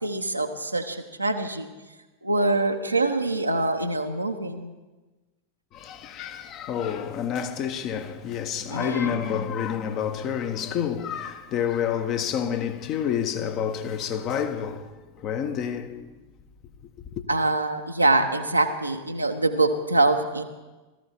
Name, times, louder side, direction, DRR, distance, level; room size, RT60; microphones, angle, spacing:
voice 1, 0.0-1.7 2.2-4.7 8.7-9.2 17.3-20.4, right 2 dB, 85° right, 1.1 m, -24 dB
voice 2, 5.7-16.1 17.1-17.2, left 8 dB, 35° left, 1.1 m, -29 dB
17.5 x 14.0 x 4.5 m
figure-of-eight pair, 90°, 0 cm